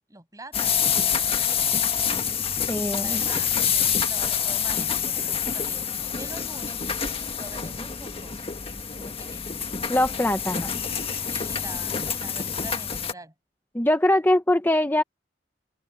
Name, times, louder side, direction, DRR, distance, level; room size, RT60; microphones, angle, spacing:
voice 1, 0.1-1.9 2.9-6.8 7.4-8.6 8.9-9.9 11.2-13.3, right 2 dB, 20° right, 6.4 m, -45 dB
sound 1, 0.5-13.1, left 7 dB, 35° left, 1.6 m, -27 dB
voice 2, 2.7-3.2 9.9-10.8 13.7-15.0, left 1 dB, 10° left, 0.8 m, -22 dB
head